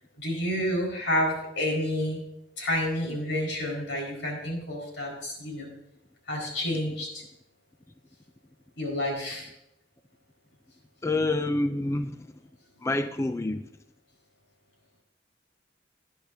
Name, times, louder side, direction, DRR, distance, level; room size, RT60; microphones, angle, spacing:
voice 1, 0.2-2.2 2.6-5.7 6.3-7.2 8.8-9.5, left 1 dB, 80° left, -1 dB, 4.8 m, -29 dB
voice 2, 11.0-12.1 12.8-13.6, left 2 dB, 15° left, 9 dB, 0.3 m, -27 dB
20.0 x 10.5 x 2.7 m, 0.86 s
head